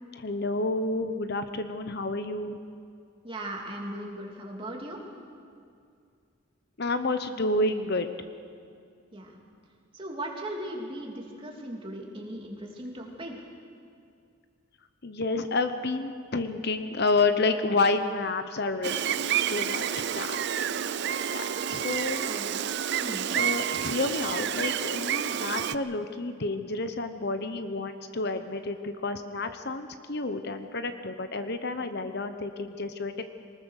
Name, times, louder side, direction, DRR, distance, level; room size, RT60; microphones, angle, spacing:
voice 1, 0.2-2.6 6.8-8.1 15.0-20.7 21.1-22.2 23.3-33.2, left 3 dB, 50° left, 9 dB, 1.0 m, -30 dB
voice 2, 3.2-5.0 9.1-9.4 9.9-13.4 22.2-22.6 23.0-23.3, right 1 dB, 25° right, -1 dB, 3.0 m, -38 dB
Gull seagull, 18.8-25.7, right 9 dB, 55° right, 0.5 m, -29 dB
24.0 x 20.5 x 6.6 m, 2.3 s
head